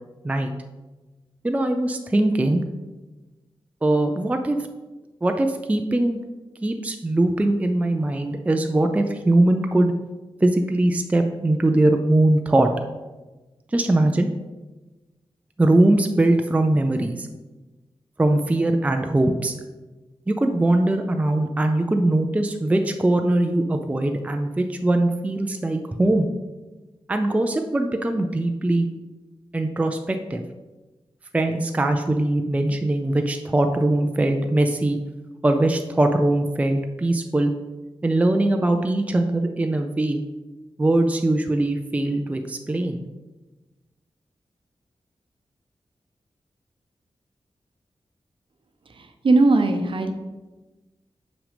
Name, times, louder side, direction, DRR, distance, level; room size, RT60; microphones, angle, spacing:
voice 1, 1.4-2.6 3.8-4.6 5.2-6.2 6.6-9.9 10.4-12.7 13.7-14.3 15.6-17.3 18.2-19.5 20.3-26.3 27.1-28.9 29.5-30.4 31.3-35.0 35.4-37.5 38.0-40.2 40.8-43.0, right 1 dB, 15° right, 5 dB, 0.4 m, -21 dB
voice 2, 49.2-50.1, right 2 dB, 55° right, 6 dB, 0.7 m, -18 dB
6.0 x 5.2 x 5.0 m, 1.2 s
wide cardioid pair, 135°, 10 cm